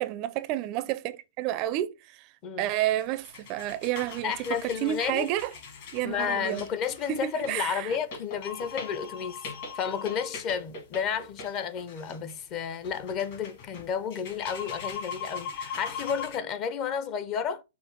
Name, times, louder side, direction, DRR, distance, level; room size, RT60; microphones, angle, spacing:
voice 1, 0.0-2.3 2.6-5.5 5.9-6.6 7.1-8.0, right 14 dB, 35° right, 0.4 m, -30 dB
sound 1, 2.7-16.4, left 5 dB, 50° left, 2.4 m, -41 dB
voice 2, 4.2-5.3 6.0-9.4 9.7-17.6, left 7 dB, 35° left, 0.6 m, -32 dB
5.7 x 2.4 x 3.9 m
hypercardioid pair, 135°, 0 cm